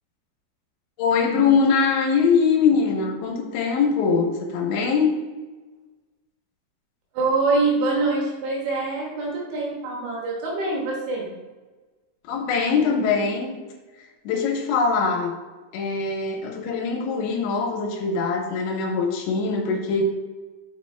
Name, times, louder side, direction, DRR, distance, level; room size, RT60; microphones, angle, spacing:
voice 1, 1.0-5.2 12.3-13.6 14.2-15.3 15.7-20.0, left 5 dB, 75° left, 1 dB, 3.0 m, -22 dB
voice 2, 7.1-11.3, right 3 dB, 70° right, -3 dB, 3.4 m, -24 dB
6.3 x 5.8 x 3.3 m, 1.3 s
omnidirectional pair, 5.7 m